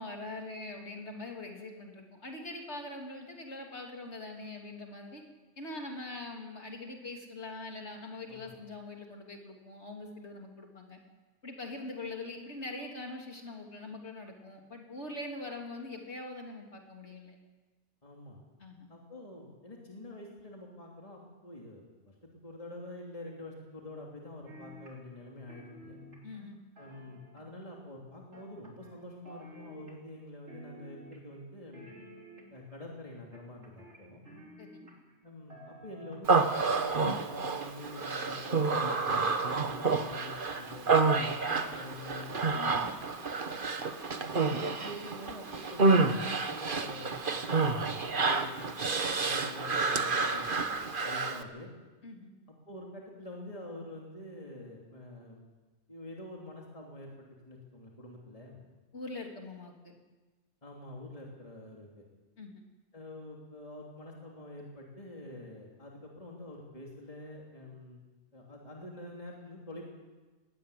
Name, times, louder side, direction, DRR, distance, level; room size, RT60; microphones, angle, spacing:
voice 1, 0.0-5.2 5.6-11.0 11.4-17.4 18.6-18.9 26.2-26.6 34.6-34.8 42.5-42.9 52.0-52.3 58.9-59.9 62.4-62.6, left 2 dB, 70° left, 1 dB, 3.3 m, -43 dB
voice 2, 18.0-18.4 18.9-26.0 26.8-31.9 32.5-34.2 35.2-42.3 44.1-48.6 49.1-50.6 51.0-51.7 52.7-55.5 55.9-58.6 60.6-62.0 62.9-68.0 68.3-69.8, left 1 dB, 30° left, -1 dB, 3.1 m, -46 dB
sound 1, 24.5-25.2 25.5-27.7 28.3-29.0 29.2-30.2 30.5-31.4 31.7-32.7 33.3-35.2 35.5-36.4 36.7-36.8, equal, 80° right, 3.9 m, -52 dB
Human voice, 36.3-51.4, right 4 dB, 50° right, 1.4 m, -29 dB
20.5 x 17.0 x 8.6 m, 1.2 s
omnidirectional pair, 1.2 m